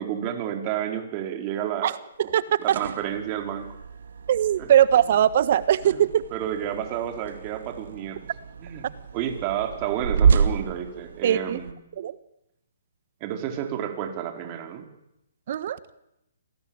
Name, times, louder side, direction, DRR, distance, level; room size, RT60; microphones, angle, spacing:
voice 1, 0.0-1.9 2.6-3.7 4.6-4.7 5.8-6.0 6.3-8.2 8.6-8.9 9.1-11.8 13.2-14.9, right 10 dB, 30° right, 5 dB, 4.6 m, -30 dB
voice 2, 1.8-2.6 4.3-6.2 11.2-11.6 12.0-12.2 15.5-15.8, right 10 dB, 50° right, 16 dB, 1.4 m, -21 dB
sound 1, 2.5-11.7, right 6 dB, 65° right, 2.3 m, -29 dB
28.0 x 21.0 x 9.1 m, 0.85 s
hypercardioid pair, 140°, 0 cm